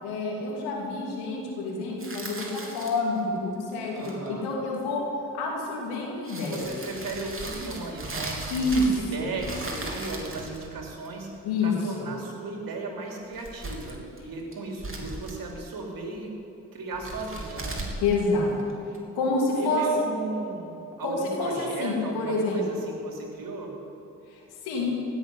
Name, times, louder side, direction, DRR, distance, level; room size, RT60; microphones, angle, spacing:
voice 1, 0.0-5.0 5.3-6.7 8.5-8.9 9.2-9.3 11.4-12.1 18.0-18.5 19.1-19.8 21.0-22.6 24.3-24.4 24.6-24.9, left 3 dB, 85° left, -2 dB, 2.9 m, -28 dB
sound 1, 2.0-3.2 3.9-4.3 5.7-5.8 6.3-9.1 9.4-11.3 13.2-14.2 14.5-15.6 16.9-19.0, right 2 dB, 35° right, 3.2 m, -37 dB
voice 2, 3.9-4.5 6.5-16.3 16.7-17.8 19.6-20.7 21.0-23.7, right 2 dB, 60° right, 0 dB, 3.3 m, -36 dB
16.0 x 7.1 x 9.8 m, 2.9 s
hypercardioid pair, 40°, 38 cm